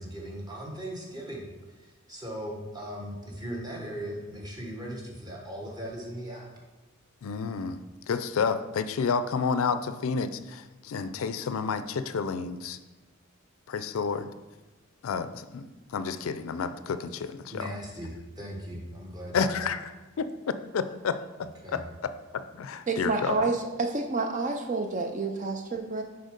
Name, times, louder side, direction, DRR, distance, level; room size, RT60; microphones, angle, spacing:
voice 1, 0.0-6.5 17.5-19.7 21.6-21.8, equal, 20° right, -1 dB, 1.2 m, -38 dB
voice 2, 7.2-12.8 13.7-14.3 15.0-17.7 19.3-19.9 20.2-20.3 20.7-23.5, left 5 dB, 75° left, 12 dB, 0.4 m, -30 dB
voice 3, 22.9-26.0, right 3 dB, 35° right, 4 dB, 0.5 m, -29 dB
6.4 x 4.4 x 5.1 m, 1.2 s
head